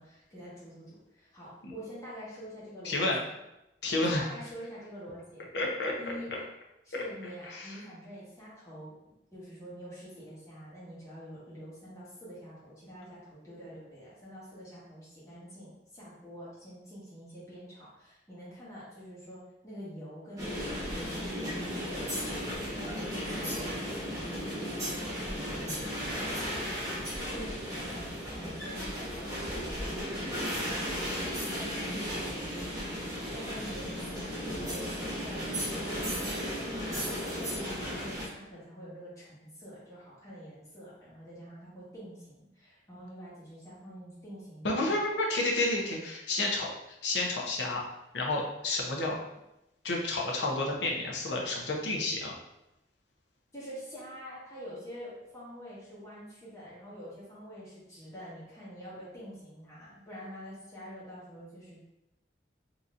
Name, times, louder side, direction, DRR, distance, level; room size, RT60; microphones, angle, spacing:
voice 1, 0.0-3.3 3.9-5.4 6.0-6.5 6.8-8.9 9.3-22.1 22.5-28.1 28.4-30.0 31.5-32.5 33.3-45.0 53.5-61.9, equal, 15° left, -9 dB, 1.4 m, -46 dB
voice 2, 2.8-3.2 3.8-4.2 5.5-5.9 7.5-7.8 44.6-46.7 47.0-47.8 48.1-49.2 49.8-52.4, left 2 dB, 80° left, -1 dB, 0.7 m, -30 dB
sound 1, 20.4-38.2, equal, 20° right, 1.1 m, -35 dB
3.8 x 2.9 x 2.5 m, 0.90 s
head